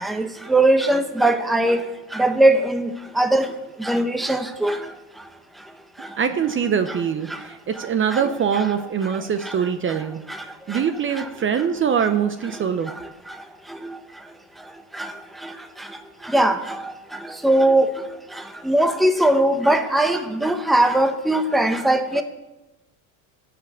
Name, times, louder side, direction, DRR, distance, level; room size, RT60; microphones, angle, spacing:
voice 1, 0.0-1.9 2.1-2.9 3.2-3.5 3.8-4.8 8.1-8.2 15.0-15.1 16.3-16.6 17.4-17.9 18.7-22.2, right 1 dB, ahead, 7 dB, 0.8 m, -19 dB
voice 2, 6.2-10.2 10.7-12.9, right 7 dB, 30° right, 9 dB, 0.7 m, -23 dB
14.0 x 6.0 x 8.1 m, 1.0 s
supercardioid pair, 110°, 43 cm